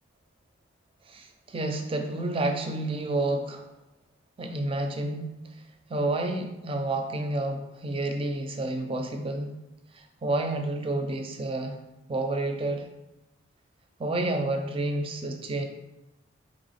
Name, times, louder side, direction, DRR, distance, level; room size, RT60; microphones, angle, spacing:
voice 1, 1.1-3.7 4.4-5.3 5.9-9.5 9.9-11.8 12.1-12.8 14.0-15.6, right 2 dB, 25° right, 5 dB, 0.4 m, -29 dB
3.9 x 3.4 x 4.0 m, 0.97 s
head